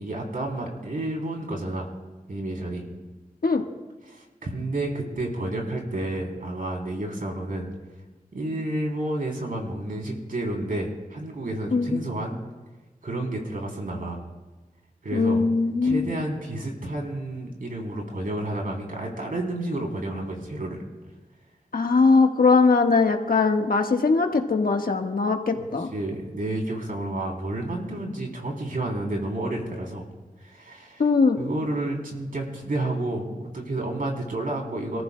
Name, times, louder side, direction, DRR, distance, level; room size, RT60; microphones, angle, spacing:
voice 1, 0.0-1.9 2.3-2.9 4.0-7.7 8.3-12.4 13.0-14.2 15.0-15.4 15.8-20.8 25.5-25.6 25.9-30.0 30.4-31.0 31.4-35.0, right 1 dB, 70° right, 0 dB, 3.3 m, -30 dB
voice 2, 15.1-16.0 21.7-25.9 31.0-31.4, left 4 dB, 80° left, 4 dB, 1.4 m, -20 dB
29.0 x 14.5 x 2.2 m, 1.2 s
cardioid pair, 50°, 15 cm